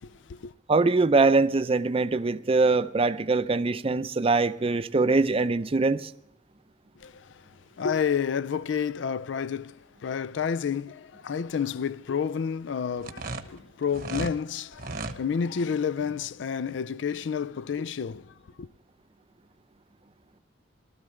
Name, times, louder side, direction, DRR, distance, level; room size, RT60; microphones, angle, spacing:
voice 1, 0.0-0.5 7.0-7.4 7.8-18.7, left 7 dB, 75° left, 0.4 m, -30 dB
voice 2, 0.7-6.1, right 3 dB, 30° right, 0.5 m, -23 dB
sound 1, 13.0-14.4 14.7-15.2, right 3 dB, 55° right, 1.0 m, -35 dB
18.5 x 13.0 x 3.2 m
head